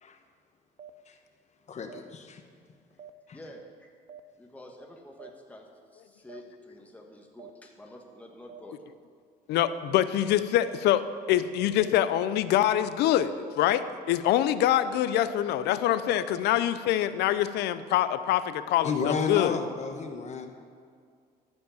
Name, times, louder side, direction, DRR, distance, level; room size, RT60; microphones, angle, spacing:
sound 1, 0.8-0.9 1.9-2.0 3.0-3.1 4.1-4.2 5.2-5.3 6.3-6.4 7.4-7.5 8.5-8.6 9.6-9.7 10.7-10.8 11.3-11.4 11.8-11.9 12.3-12.4 12.8-12.9 13.3-13.4 13.8-13.9 14.3-14.4 14.8-14.9 15.3-16.4, right 9 dB, 45° right, 0.6 m, -45 dB
voice 1, 1.7-2.4 3.3-3.4 18.8-20.5, left 5 dB, 40° left, 6 dB, 1.2 m, -32 dB
voice 2, 3.3-3.9 4.4-8.8, left 1 dB, 10° left, 1 dB, 1.3 m, -49 dB
voice 3, 9.5-19.6, left 12 dB, 80° left, 13 dB, 0.6 m, -25 dB
13.0 x 5.3 x 7.0 m, 2.2 s
cardioid pair, 110°, 17 cm